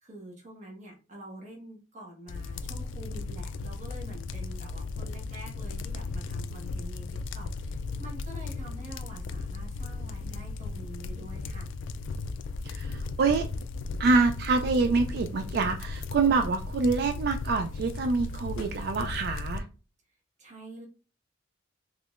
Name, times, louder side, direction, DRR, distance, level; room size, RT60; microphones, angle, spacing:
voice 1, 0.0-7.1 7.3-11.7 20.4-20.9, right 1 dB, 40° right, -1 dB, 1.1 m, -46 dB
sound 1, 2.3-19.6, left 3 dB, 75° left, 0.3 m, -36 dB
voice 2, 12.6-13.4 14.0-19.6, right 4 dB, 55° right, 6 dB, 0.3 m, -26 dB
3.6 x 3.1 x 2.4 m, 0.34 s
head